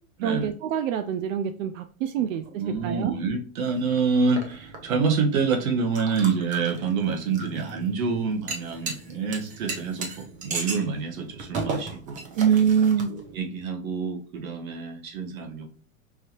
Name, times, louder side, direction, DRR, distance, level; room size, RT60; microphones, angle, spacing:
voice 1, 0.2-2.4 2.8-3.1 12.4-13.1, right 8 dB, 70° right, 8 dB, 0.5 m, -24 dB
voice 2, 2.6-12.4 13.2-15.7, right 5 dB, 85° right, 4 dB, 1.3 m, -27 dB
sound 1, 3.7-13.4, right 3 dB, 20° right, 0.6 m, -37 dB
4.8 x 2.7 x 2.9 m, 0.42 s
supercardioid pair, 150°, 40 cm